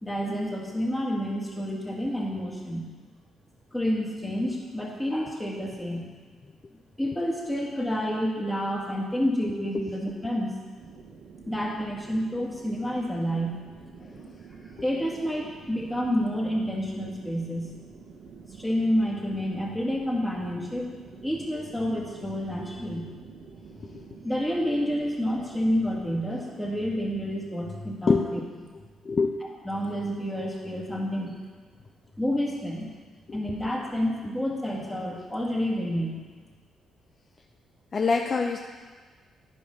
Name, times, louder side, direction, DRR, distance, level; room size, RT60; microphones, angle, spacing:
voice 1, 0.0-2.9 3.7-6.1 7.0-10.5 11.5-13.8 14.8-17.7 18.5-20.9 21.2-23.0 24.2-28.4 29.6-31.3 32.2-32.9 33.3-36.2, equal, 10° left, -3 dB, 2.0 m, -29 dB
sound 1, 10.8-26.1, right 5 dB, 65° right, 1.1 m, -48 dB
voice 2, 29.0-29.4 33.3-33.4 37.9-38.6, left 4 dB, 40° left, 3 dB, 0.6 m, -23 dB
10.0 x 5.3 x 5.4 m, 1.5 s
cardioid pair, 90°, 0 cm